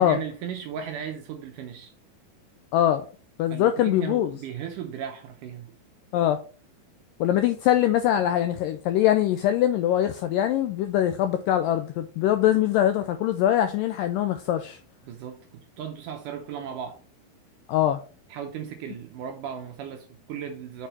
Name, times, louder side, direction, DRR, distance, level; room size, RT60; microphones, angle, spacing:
voice 1, 0.0-1.9 3.5-5.7 15.0-17.0 18.3-20.9, right 8 dB, 75° right, 2.0 m, -36 dB
voice 2, 2.7-3.1 3.4-4.3 6.1-6.4 7.2-14.8 17.7-18.0, left 11 dB, 90° left, 1.9 m, -23 dB
7.0 x 4.6 x 4.2 m
omnidirectional pair, 4.5 m